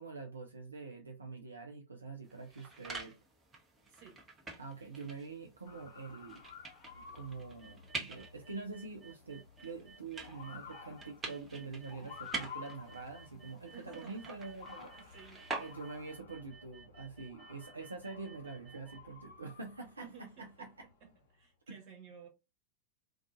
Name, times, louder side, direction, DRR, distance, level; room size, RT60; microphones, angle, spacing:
voice 1, 0.0-3.2 4.6-6.4 7.0-20.9 21.7-21.8, right 4 dB, 75° right, 0.3 m, -46 dB
sound 1, 2.2-16.2, right 3 dB, 20° right, 0.7 m, -47 dB
voice 2, 3.9-4.2 13.7-14.5 14.9-15.6 20.0-20.7 21.0-22.3, right 6 dB, 40° right, 1.1 m, -55 dB
Motor vehicle (road) / Siren, 5.7-21.2, left 6 dB, 55° left, 0.7 m, -54 dB
sound 2, 7.6-19.0, right 5 dB, ahead, 1.1 m, -59 dB
2.3 x 2.3 x 2.5 m
figure-of-eight pair, 90°, 0 cm